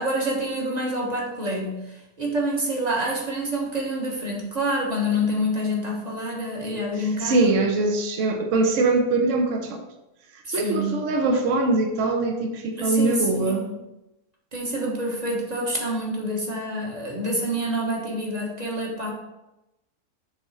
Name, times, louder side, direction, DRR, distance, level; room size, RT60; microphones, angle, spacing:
voice 1, 0.0-7.5 10.4-11.0 12.8-13.8 14.5-19.1, equal, 25° right, -2 dB, 1.2 m, -27 dB
voice 2, 7.2-9.8 10.5-13.7, right 3 dB, 55° right, 4 dB, 1.1 m, -22 dB
7.2 x 3.5 x 4.2 m, 0.95 s
omnidirectional pair, 1.7 m